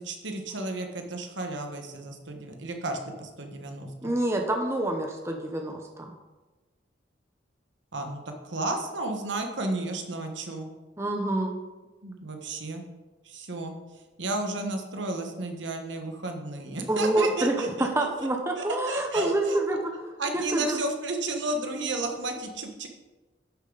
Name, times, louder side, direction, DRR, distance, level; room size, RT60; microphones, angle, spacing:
voice 1, 0.0-4.1 7.9-10.7 12.0-12.8 13.2-13.7 14.2-17.9 18.2-18.3 18.5-19.6 20.2-22.9, right 2 dB, 75° right, 4 dB, 1.4 m, -33 dB
voice 2, 4.0-6.1 11.0-11.6 16.9-20.8, right 1 dB, 15° right, 3 dB, 0.8 m, -27 dB
11.0 x 6.9 x 4.0 m, 1.2 s
head